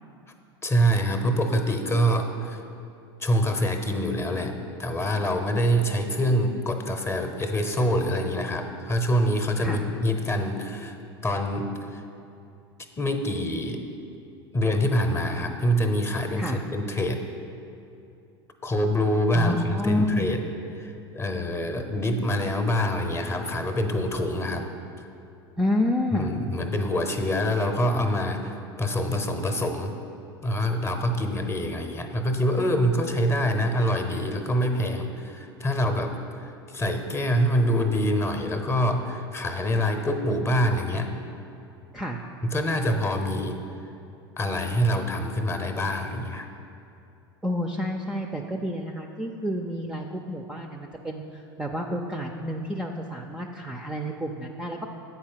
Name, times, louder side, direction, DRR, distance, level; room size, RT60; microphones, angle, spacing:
voice 1, 0.6-2.6 3.2-4.5 4.8-11.0 11.2-12.0 13.0-13.8 14.5-17.2 18.6-20.4 20.7-24.7 26.1-29.9 30.4-36.1 36.4-41.1 42.4-43.6 44.4-46.5, equal, 20° left, 6 dB, 0.7 m, -25 dB
voice 2, 19.3-20.3 25.6-26.4 41.9-42.2 47.4-54.9, left 1 dB, 5° right, 2 dB, 0.4 m, -29 dB
7.9 x 4.4 x 5.7 m, 2.7 s
hypercardioid pair, 85°, 13 cm